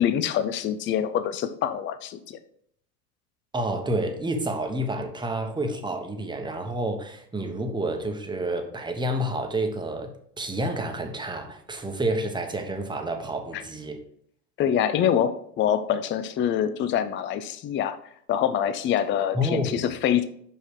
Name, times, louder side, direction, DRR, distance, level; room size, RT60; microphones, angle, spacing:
voice 1, 0.0-2.4 13.5-13.6 14.6-18.0 18.3-20.2, left 9 dB, 25° left, 0.5 m, -25 dB
voice 2, 3.5-10.1 10.4-14.0 19.3-19.8, right 1 dB, 10° right, 1.1 m, -29 dB
5.6 x 5.5 x 4.7 m
hypercardioid pair, 100°, 49 cm